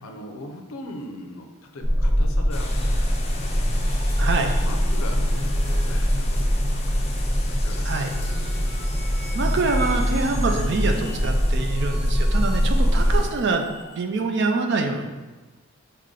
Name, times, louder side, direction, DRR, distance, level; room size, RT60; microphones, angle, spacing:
voice 1, 0.0-1.5 1.7-3.7 4.2-7.0 7.4-8.4 12.8-13.3, left 1 dB, 80° left, 3 dB, 0.6 m, -40 dB
sound 1, 1.8-13.2, equal, ahead, 1.0 m, -23 dB
sound 2, 2.5-13.3, left 3 dB, 30° left, 0.4 m, -39 dB
sound 3, 3.3-13.9, equal, 25° right, 1.4 m, -44 dB
voice 2, 4.2-4.5 7.8-8.2 9.3-13.6 14.0-15.1, right 3 dB, 55° right, 4 dB, 0.4 m, -25 dB
4.9 x 2.2 x 3.7 m, 1.2 s
head